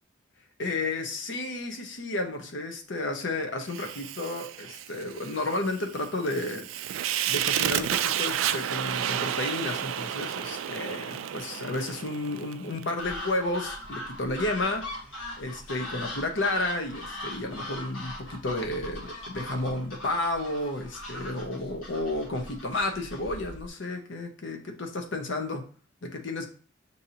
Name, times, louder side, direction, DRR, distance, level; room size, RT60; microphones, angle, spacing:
voice 1, 0.6-14.9 15.4-25.6 26.0-26.5, left 2 dB, 65° left, 4 dB, 0.8 m, -32 dB
Fire, 3.7-12.9, right 10 dB, 90° right, 0.3 m, -31 dB
sound 1, 13.0-23.7, left 1 dB, 85° left, 1.5 m, -40 dB
6.3 x 2.7 x 2.8 m, 0.41 s
head